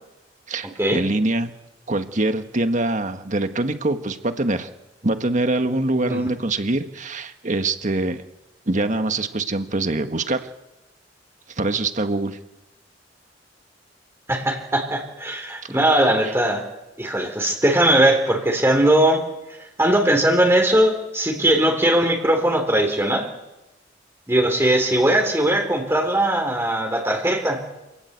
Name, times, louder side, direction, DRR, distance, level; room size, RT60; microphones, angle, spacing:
voice 1, 0.5-1.5 1.9-4.7 5.0-8.2 8.7-10.5 11.6-12.4 15.9-16.3, right 2 dB, 45° right, 8 dB, 1.6 m, -24 dB
voice 2, 14.3-16.6 17.0-19.3 19.8-23.3 24.3-27.6, right 1 dB, 15° right, 2 dB, 3.6 m, -19 dB
27.5 x 18.0 x 8.2 m, 0.99 s
head